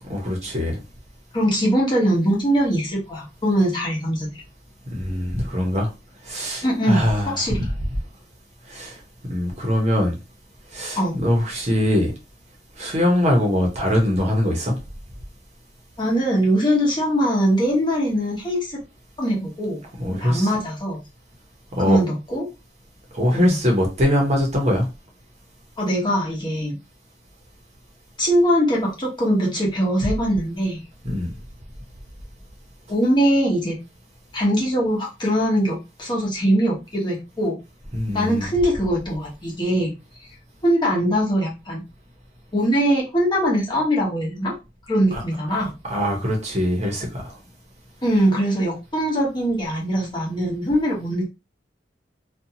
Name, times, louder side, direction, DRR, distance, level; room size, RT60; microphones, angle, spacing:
voice 1, 0.1-0.8 4.9-5.9 6.3-7.3 8.7-8.9 9.3-10.1 10.7-12.1 12.8-14.7 20.0-20.5 21.7-22.0 23.1-24.9 31.0-31.3 37.9-38.5 45.1-45.2 45.9-47.3, left 1 dB, 40° right, 0.9 m, -22 dB
voice 2, 1.3-4.3 6.6-7.7 10.9-11.2 16.0-18.8 19.2-19.8 20.2-21.0 21.8-22.5 23.3-23.6 25.8-26.8 28.2-30.8 32.9-33.8 34.3-37.6 38.1-39.9 40.6-41.8 42.5-44.5 44.9-45.7 48.0-51.3, equal, 25° left, 1.0 m, -21 dB
2.7 x 2.4 x 2.7 m
head